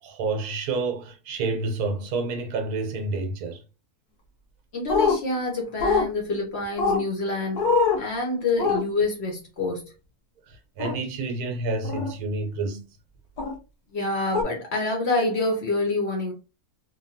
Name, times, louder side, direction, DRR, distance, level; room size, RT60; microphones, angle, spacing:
voice 1, 0.0-3.6 10.5-12.8 15.2-15.3, right 3 dB, 80° right, 1.1 m, -29 dB
voice 2, 4.7-9.9 13.9-16.3, left 2 dB, 55° left, 0.8 m, -27 dB
sound 1, 4.9-5.2 5.8-6.1 6.8-7.0 7.6-8.0 8.6-8.8 10.8-11.0 11.8-12.1 13.4-13.5 14.3-14.4, left 4 dB, 85° left, 1.4 m, -22 dB
3.0 x 2.2 x 2.6 m
omnidirectional pair, 1.6 m